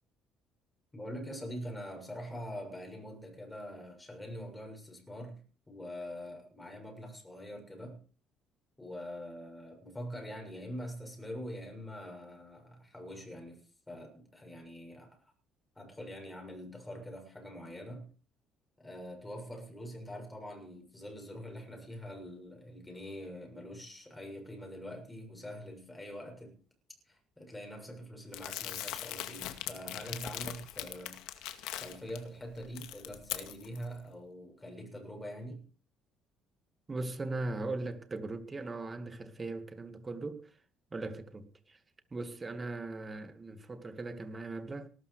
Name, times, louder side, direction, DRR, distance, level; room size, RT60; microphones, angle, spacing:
voice 1, 0.9-8.0 8.8-15.2 15.7-18.1 18.8-26.6 27.1-35.7, equal, 10° left, 6.7 m, -44 dB
Crumpling crinkling, 28.3-32.2 32.6-33.8, left 13 dB, 90° left, 2.1 m, -41 dB
voice 2, 36.9-40.5 40.9-41.8 42.1-44.9, right 2 dB, 20° right, 2.2 m, -39 dB
18.5 x 12.5 x 4.9 m
cardioid pair, 120°, 0 cm